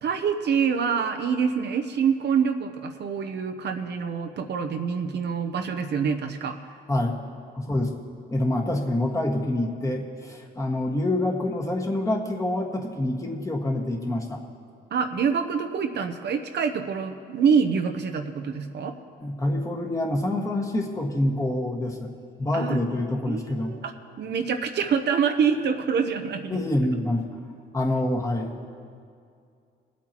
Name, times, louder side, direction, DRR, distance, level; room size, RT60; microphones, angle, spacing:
voice 1, 0.0-6.6 14.9-18.9 22.5-22.8 23.3-23.9 24.2-26.6, right 6 dB, 60° right, 6 dB, 0.8 m, -26 dB
voice 2, 7.5-7.9 8.3-14.4 19.2-22.1 22.4-23.7 26.5-27.3 27.7-28.7, left 1 dB, 15° left, -1 dB, 1.7 m, -26 dB
24.5 x 8.4 x 3.0 m, 2.3 s
cardioid pair, 90°, 20 cm